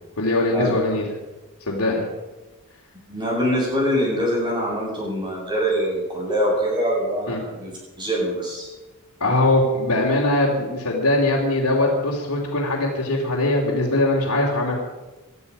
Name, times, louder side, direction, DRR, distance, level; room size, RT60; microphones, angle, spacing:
voice 1, 0.2-1.1 1.7-2.1 7.3-7.4 9.2-14.7, left 2 dB, 80° left, -4 dB, 2.9 m, -21 dB
voice 2, 3.1-8.7, equal, 20° right, -3 dB, 7.8 m, -24 dB
20.5 x 12.5 x 5.5 m, 1.2 s
head